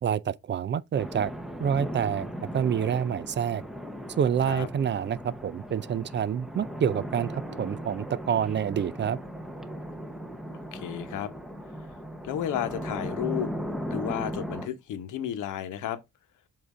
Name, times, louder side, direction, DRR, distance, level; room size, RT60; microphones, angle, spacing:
voice 1, 0.0-1.3 1.6-2.3 2.5-3.6 4.2-9.2, right 8 dB, 40° right, 0.4 m, -27 dB
sound 1, 1.0-14.7, equal, ahead, 0.9 m, -37 dB
voice 2, 10.7-11.3 12.2-13.5 13.9-16.0, left 10 dB, 85° left, 1.0 m, -32 dB
7.5 x 2.7 x 4.9 m
cardioid pair, 90°, 30 cm